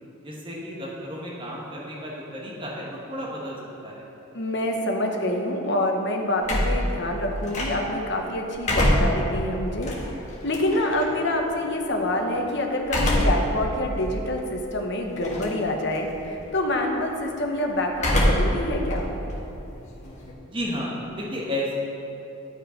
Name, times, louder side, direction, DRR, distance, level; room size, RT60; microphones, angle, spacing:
voice 1, 0.2-3.6 3.8-4.0 20.5-21.7, equal, 25° right, -4 dB, 1.3 m, -32 dB
voice 2, 4.3-9.9 10.4-19.1, left 1 dB, 55° left, 2 dB, 1.0 m, -26 dB
sound 1, 6.4-8.1 8.5-11.0 12.8-13.5 14.0-14.1 15.2-15.7 16.0-16.4 17.9-18.6 18.9-20.3, equal, 35° left, 1.5 m, -24 dB
12.0 x 5.5 x 5.1 m, 2.9 s
head